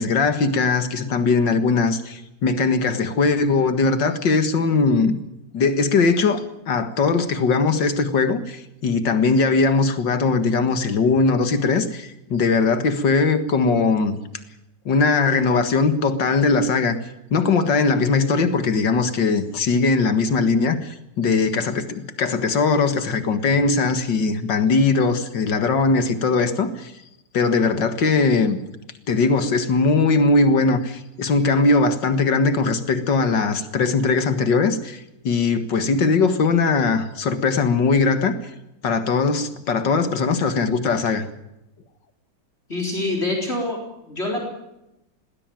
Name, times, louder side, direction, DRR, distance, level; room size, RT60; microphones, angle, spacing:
voice 1, 0.0-5.2 5.5-14.2 14.9-17.0 17.3-26.9 27.3-28.6 29.1-38.3 38.8-41.3, left 4 dB, 75° left, 10 dB, 2.3 m, -20 dB
voice 2, 42.7-43.8 44.0-44.5, left 2 dB, 35° left, 2 dB, 4.4 m, -25 dB
20.5 x 16.5 x 9.1 m, 0.88 s
omnidirectional pair, 2.0 m